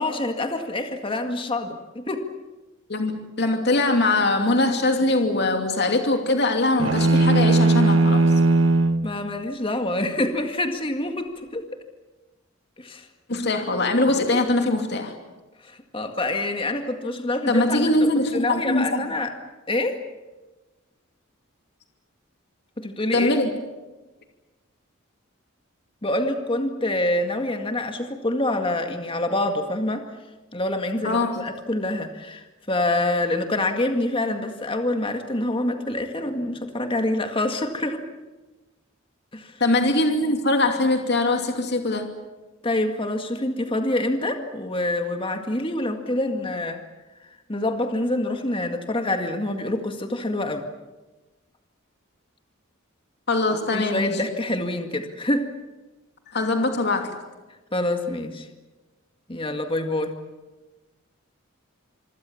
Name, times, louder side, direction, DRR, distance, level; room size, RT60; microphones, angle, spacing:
voice 1, 0.0-2.2 9.0-11.6 12.8-13.1 15.6-19.3 19.7-20.0 22.8-23.3 26.0-30.0 30.5-38.1 39.3-39.5 42.6-46.8 47.5-50.6 53.7-55.5 57.7-58.5 59.3-60.1, left 1 dB, 25° left, 5 dB, 2.0 m, -26 dB
voice 2, 2.9-8.2 13.3-15.1 17.5-19.0 23.1-23.5 31.0-31.4 39.6-42.1 53.3-54.1 56.3-57.2, left 2 dB, 55° left, 4 dB, 2.7 m, -22 dB
sound 1, 6.8-9.1, right 2 dB, 70° right, 1.2 m, -18 dB
26.5 x 24.5 x 7.2 m, 1.2 s
head